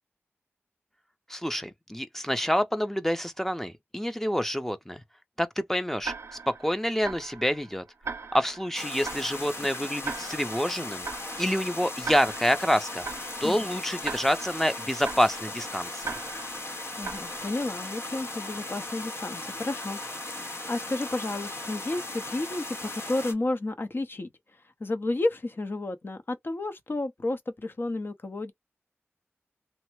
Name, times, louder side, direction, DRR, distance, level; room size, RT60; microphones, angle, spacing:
voice 1, 1.3-5.0 5.4-6.1 6.5-7.8 8.3-11.1 11.4-13.1 13.4-16.1, equal, 5° left, 0.5 m, -27 dB
Tick-tock, 6.0-17.9, right 5 dB, 80° right, 0.6 m, -41 dB
sound 1, 8.7-23.3, left 2 dB, 70° left, 1.0 m, -37 dB
voice 2, 13.4-13.8 17.0-20.0 20.3-24.3 24.8-28.5, left 2 dB, 50° left, 0.7 m, -32 dB
3.3 x 2.0 x 3.1 m
wide cardioid pair, 60°, 5 cm